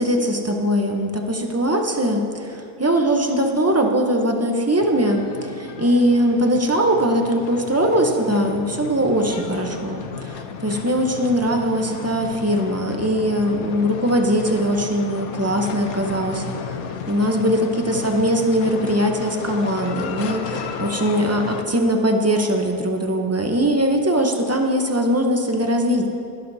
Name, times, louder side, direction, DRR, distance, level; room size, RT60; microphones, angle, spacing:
voice 1, 0.0-10.4 10.6-16.8 17.1-26.1, equal, 20° right, 2 dB, 0.4 m, -21 dB
sound 1, 4.8-21.6, left 6 dB, 70° left, 1.1 m, -34 dB
19.0 x 12.5 x 2.7 m, 2.6 s
omnidirectional pair, 1.6 m